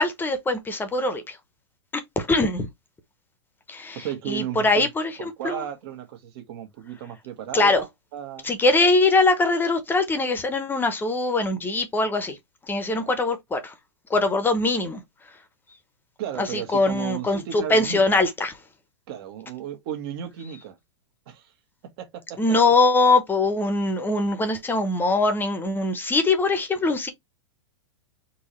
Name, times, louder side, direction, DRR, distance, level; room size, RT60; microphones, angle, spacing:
voice 1, 0.0-1.4 2.2-2.7 3.7-4.0 4.3-5.6 7.5-7.8 8.4-12.4 12.7-13.7 14.1-15.0 16.4-18.5 22.4-27.1, left 3 dB, 15° left, 0.8 m, -22 dB
voice 2, 3.9-4.9 5.2-8.5 12.9-13.2 16.2-18.2 19.1-20.8 21.3-21.5 22.0-22.4, right 10 dB, 50° right, 1.4 m, -34 dB
4.5 x 2.8 x 3.1 m
hypercardioid pair, 115°, 15 cm